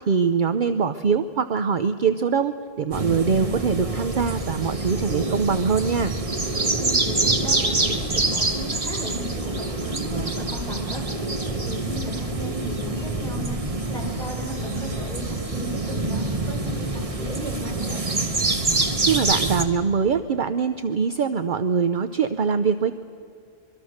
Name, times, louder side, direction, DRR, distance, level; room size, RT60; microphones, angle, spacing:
voice 1, 0.1-6.1 19.1-22.9, right 6 dB, 55° right, 11 dB, 0.8 m, -23 dB
sound 1, 2.9-19.6, right 2 dB, 35° right, 1.5 m, -26 dB
voice 2, 6.7-13.6 13.9-18.0, equal, 5° left, -2 dB, 5.3 m, -36 dB
25.0 x 23.0 x 6.5 m, 2.4 s
omnidirectional pair, 1.1 m